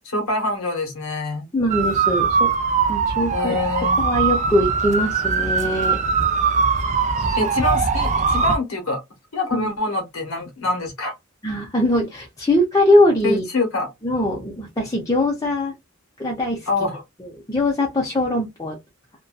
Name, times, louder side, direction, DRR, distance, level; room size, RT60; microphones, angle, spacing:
voice 1, 0.0-1.5 3.3-4.0 7.4-9.0 9.3-11.1 13.2-13.9 16.7-17.0, left 2 dB, 85° left, 1.1 m, -25 dB
voice 2, 1.5-2.5 2.9-3.6 4.0-6.0 7.2-7.4 9.5-9.7 11.4-13.5 14.0-15.7 16.2-16.7 17.2-18.8, left 1 dB, 15° left, 0.5 m, -21 dB
sound 1, 1.7-8.6, right 5 dB, 35° right, 0.4 m, -21 dB
2.6 x 2.2 x 2.2 m
head